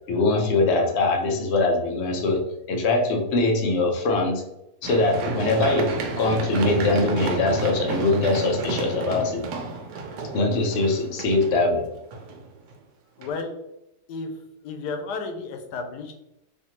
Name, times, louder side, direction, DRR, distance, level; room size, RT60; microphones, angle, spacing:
voice 1, 0.1-4.4 4.8-9.4 10.3-11.8, left 2 dB, 60° left, 2 dB, 0.7 m, -22 dB
Run, 4.8-12.7 13.2-13.3, right 3 dB, 90° right, 1.2 m, -31 dB
voice 2, 13.2-13.5 14.1-16.1, left 4 dB, 90° left, 5 dB, 1.2 m, -33 dB
3.5 x 2.6 x 2.8 m, 0.86 s
omnidirectional pair, 1.7 m